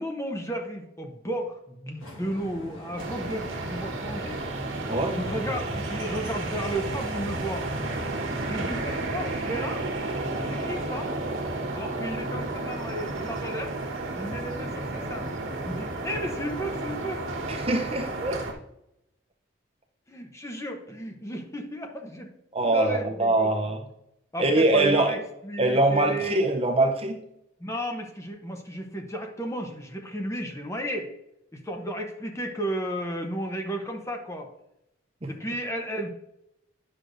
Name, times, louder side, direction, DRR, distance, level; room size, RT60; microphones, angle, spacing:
voice 1, 0.0-4.4 5.1-7.7 8.5-9.8 10.5-11.1 11.7-13.7 14.1-15.3 15.6-17.3 20.1-22.3 22.6-23.7 24.3-26.4 27.6-31.1 31.5-34.5 35.3-36.1, equal, 15° left, 3 dB, 0.8 m, -33 dB
sound 1, 2.0-7.2, left 1 dB, 75° left, 1.6 m, -45 dB
sound 2, 3.0-18.5, right 2 dB, 70° right, 1.2 m, -32 dB
voice 2, 4.9-5.2 17.5-18.4 22.5-23.8 24.4-25.1 25.6-27.2 35.2-35.3, right 2 dB, 30° right, 4 dB, 0.6 m, -23 dB
9.8 x 6.2 x 2.6 m, 0.84 s
head